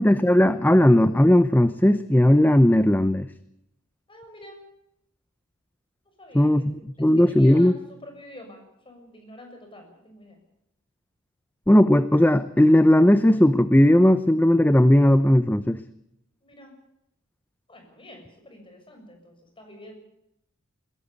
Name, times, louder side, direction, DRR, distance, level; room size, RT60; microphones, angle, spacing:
voice 1, 0.0-3.3 6.3-6.7 7.0-7.7 11.7-15.8, left 1 dB, 10° left, 12 dB, 0.7 m, -17 dB
voice 2, 4.1-4.6 6.0-10.4 16.4-16.8 17.7-19.9, left 1 dB, 25° left, 4 dB, 6.6 m, -47 dB
21.5 x 16.5 x 8.3 m, 0.80 s
head